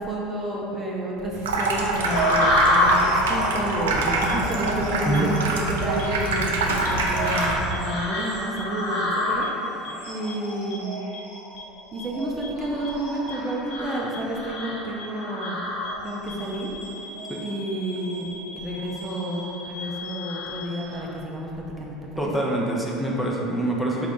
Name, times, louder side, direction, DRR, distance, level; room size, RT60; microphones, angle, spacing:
voice 1, 0.0-11.0 11.9-16.7 17.4-21.5 21.8-22.3, right 1 dB, 30° right, -2 dB, 0.6 m, -30 dB
Water tap faucet / Sink (filling or washing), 1.3-7.8, right 2 dB, 90° right, 0.4 m, -26 dB
sound 1, 2.0-16.3 16.8-17.4 17.9-18.2 18.7-19.4 19.8-21.0, left 1 dB, 80° left, 0.9 m, -28 dB
sound 2, 4.3-4.4 5.1-5.2 6.0-6.1 6.8-6.9 7.7-7.8 8.6-8.7 9.4-9.5 9.8-9.9 10.3-10.4 10.7-10.8 11.1-11.2 11.6-11.7 12.0-12.1 12.4-12.5 12.8-12.9 13.3-13.4 13.7-13.8 14.1-14.2 14.6-14.7 15.0-15.1 15.4-15.5 15.8-15.9 16.3-20.7, left 5 dB, 55° left, 0.5 m, -39 dB
voice 2, 5.0-5.4 17.3-17.4 22.2-24.1, right 1 dB, 10° left, -3 dB, 0.6 m, -25 dB
4.4 x 2.4 x 3.7 m, 3.0 s
hypercardioid pair, 85°, 0 cm